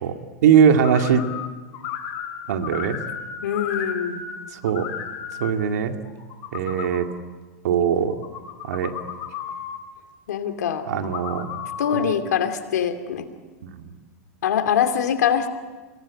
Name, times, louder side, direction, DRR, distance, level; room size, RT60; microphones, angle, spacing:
voice 1, 0.0-1.2 2.5-3.0 4.6-4.9 5.4-6.0 6.5-7.1 7.6-8.2 8.6-8.9 10.9-11.5 13.6-13.9, right 7 dB, 80° right, 6 dB, 2.2 m, -20 dB
sound 1, 0.8-1.5 1.7-4.4 4.6-5.5 6.0-7.0 8.0-9.8 10.9-12.1, left 8 dB, 50° left, 3.3 m, -34 dB
voice 2, 3.4-4.2 10.3-10.9 11.8-13.3 14.4-15.5, left 8 dB, 85° left, 6 dB, 2.5 m, -23 dB
25.5 x 17.5 x 8.7 m, 1.3 s
hypercardioid pair, 120°, 9 cm